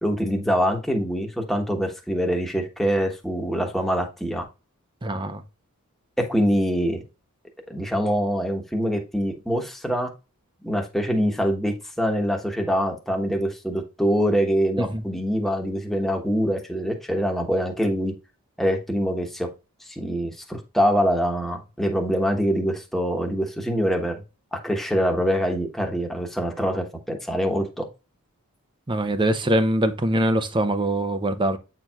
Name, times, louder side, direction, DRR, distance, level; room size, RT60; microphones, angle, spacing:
voice 1, 0.0-4.4 6.2-7.0 7.7-10.1 10.6-18.1 18.6-19.5 19.9-24.2 24.5-27.9, equal, ahead, 1.2 m, -24 dB
voice 2, 5.0-5.4 14.8-15.0 28.9-31.6, right 1 dB, 20° right, 0.6 m, -23 dB
8.6 x 4.5 x 2.4 m
head